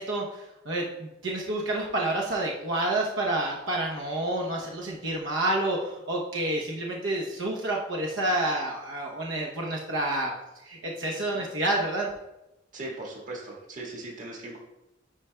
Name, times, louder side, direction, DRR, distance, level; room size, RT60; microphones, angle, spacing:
voice 1, 0.0-10.3 10.6-12.1, right 1 dB, 80° right, -2 dB, 0.8 m, -29 dB
voice 2, 12.7-14.6, right 2 dB, 40° right, -3 dB, 1.6 m, -39 dB
9.8 x 4.8 x 2.2 m, 0.94 s
head